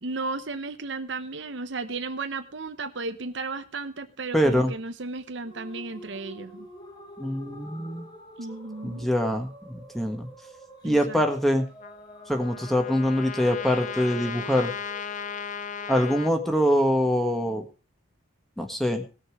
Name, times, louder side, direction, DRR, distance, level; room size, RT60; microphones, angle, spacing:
voice 1, 0.0-6.7 8.4-9.1 10.8-11.2, right 3 dB, 65° right, 10 dB, 0.9 m, -34 dB
voice 2, 4.3-4.7 7.2-8.1 8.8-10.3 10.8-11.6 12.3-14.7 15.9-17.6 18.6-19.0, equal, ahead, 5 dB, 1.5 m, -24 dB
sound 1, 5.4-15.9, equal, 20° left, 3.9 m, -48 dB
Trumpet, 11.8-16.3, left 6 dB, 40° left, 0.6 m, -36 dB
19.0 x 6.6 x 4.7 m, 0.34 s
head